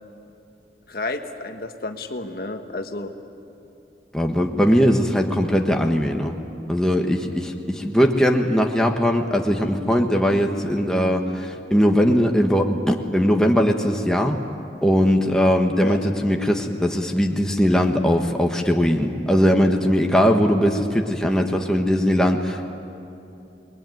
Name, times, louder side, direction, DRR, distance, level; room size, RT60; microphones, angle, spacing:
voice 1, 0.9-3.1 4.7-4.8 15.8-16.0, left 2 dB, 55° left, 6 dB, 1.4 m, -31 dB
voice 2, 4.1-6.3 6.7-14.4 14.8-22.6, equal, 5° left, 2 dB, 1.4 m, -20 dB
28.5 x 21.5 x 9.4 m, 2.7 s
head